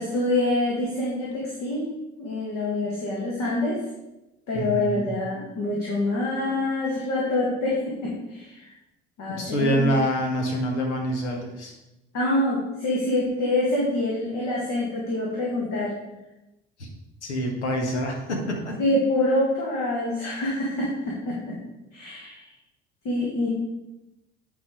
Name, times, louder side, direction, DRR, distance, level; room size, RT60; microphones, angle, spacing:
voice 1, 0.0-1.9 2.2-3.8 4.5-8.7 9.2-9.8 12.1-15.9 18.8-21.6 21.9-22.4 23.0-23.5, left 1 dB, 50° left, -4 dB, 2.0 m, -26 dB
voice 2, 4.5-5.1 9.3-11.7 16.8-16.9 17.2-18.8, equal, 75° left, 1 dB, 1.5 m, -26 dB
9.3 x 4.2 x 4.8 m, 0.97 s
figure-of-eight pair, 60°, 35 cm